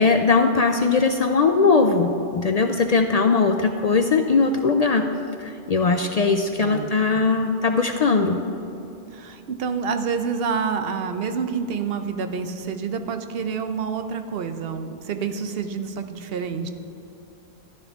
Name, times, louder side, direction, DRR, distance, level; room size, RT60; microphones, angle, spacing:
voice 1, 0.0-5.1 5.4-8.4, left 4 dB, 55° left, 6 dB, 0.5 m, -20 dB
voice 2, 6.6-7.2 9.1-16.7, right 6 dB, 70° right, 8 dB, 0.9 m, -28 dB
11.5 x 10.5 x 3.6 m, 2.8 s
omnidirectional pair, 1.0 m